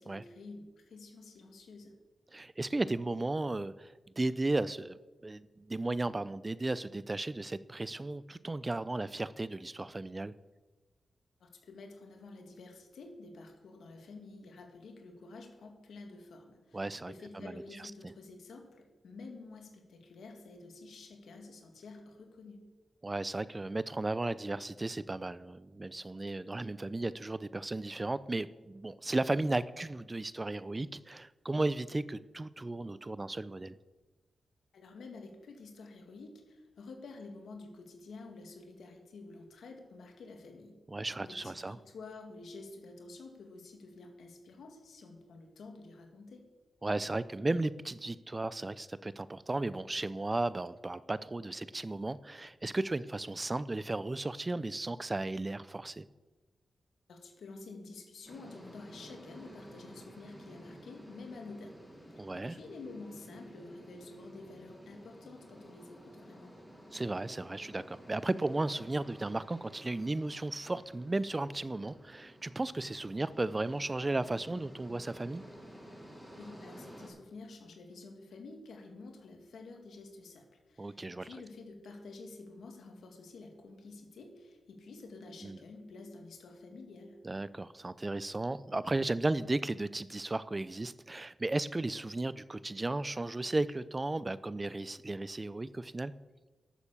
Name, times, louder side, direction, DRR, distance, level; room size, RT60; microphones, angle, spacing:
voice 1, 0.0-1.9 11.4-22.7 34.7-40.7 41.2-46.4 57.1-66.5 76.3-87.2, left 3 dB, 85° left, 3 dB, 2.0 m, -50 dB
voice 2, 2.3-10.3 16.7-17.6 23.0-33.8 40.9-41.8 46.8-56.0 62.2-62.6 66.9-75.4 80.8-81.3 85.4-85.6 87.2-96.1, right 2 dB, 25° right, 17 dB, 0.4 m, -35 dB
sound 1, 58.2-77.1, equal, ahead, 4.0 m, -53 dB
11.5 x 7.1 x 7.0 m, 1.2 s
cardioid pair, 70°, 0 cm